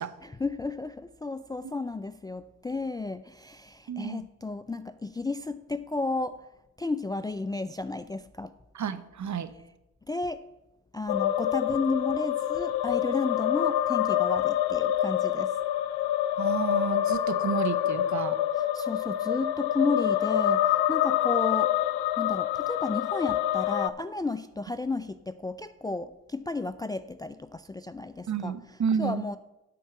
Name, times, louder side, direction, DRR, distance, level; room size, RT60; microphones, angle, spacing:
voice 1, 0.2-6.5 6.8-8.5 10.1-10.4 10.9-15.5 18.7-21.7 22.2-28.5 29.0-29.4, left 3 dB, 10° left, 12 dB, 0.3 m, -32 dB
voice 2, 3.9-4.3 8.7-9.5 16.4-18.4 28.3-29.3, right 7 dB, 45° right, 12 dB, 0.9 m, -31 dB
sound 1, 11.1-23.9, left 12 dB, 85° left, 0.6 m, -26 dB
10.0 x 4.6 x 7.5 m, 0.97 s
supercardioid pair, 55°, 39 cm